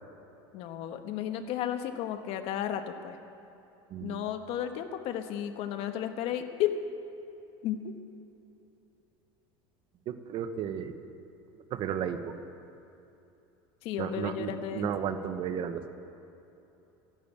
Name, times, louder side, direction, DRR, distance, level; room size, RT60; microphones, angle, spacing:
voice 1, 0.5-3.2 4.0-6.8 7.6-7.9 13.8-14.9, left 10 dB, 55° left, 8 dB, 1.2 m, -33 dB
voice 2, 3.9-4.3 10.1-10.9 11.7-12.4 14.0-15.9, right 8 dB, 50° right, 9 dB, 1.1 m, -33 dB
14.0 x 11.0 x 8.8 m, 2.9 s
supercardioid pair, 125°, 11 cm